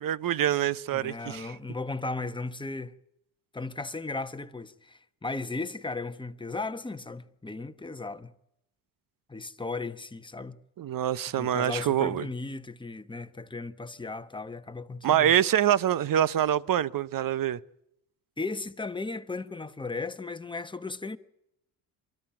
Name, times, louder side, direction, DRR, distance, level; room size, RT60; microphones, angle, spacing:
voice 1, 0.0-1.5 10.8-12.3 15.0-17.6, right 11 dB, 45° right, 0.9 m, -25 dB
voice 2, 0.9-2.9 3.5-8.3 9.3-10.6 11.2-15.3 18.4-21.2, left 3 dB, 10° left, 1.2 m, -36 dB
23.5 x 13.5 x 8.9 m
supercardioid pair, 65°, 47 cm